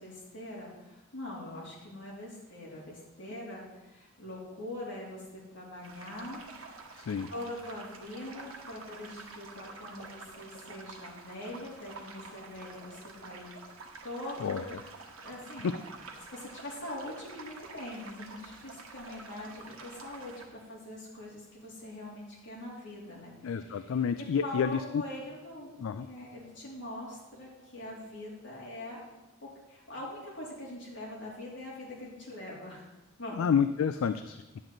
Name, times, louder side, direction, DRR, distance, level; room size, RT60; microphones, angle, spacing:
voice 1, 0.0-6.8 7.3-13.5 14.0-14.7 15.2-15.8 16.3-29.0 29.4-32.9 33.2-33.5, left 1 dB, 60° left, -5 dB, 3.0 m, -43 dB
sound 1, 5.8-20.5, right 3 dB, 85° right, 1.2 m, -48 dB
voice 2, 7.0-7.3 14.4-14.6 15.6-15.7 23.4-25.0 25.8-26.1 33.3-34.4, left 7 dB, 75° left, 10 dB, 0.3 m, -29 dB
10.5 x 7.5 x 3.9 m, 1.0 s
head